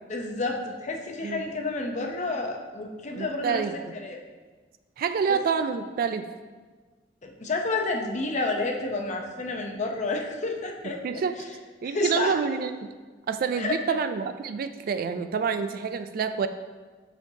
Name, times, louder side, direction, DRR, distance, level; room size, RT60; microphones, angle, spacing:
voice 1, 0.1-3.6 3.9-4.2 5.3-5.4 7.2-11.5 11.8-12.3 13.6-14.0, left 2 dB, 40° left, 2 dB, 0.7 m, -30 dB
voice 2, 3.2-3.7 5.0-6.3 11.0-11.4 11.8-12.9 13.3-16.5, right 6 dB, 55° right, 10 dB, 0.3 m, -27 dB
7.8 x 4.5 x 2.7 m, 1.4 s
head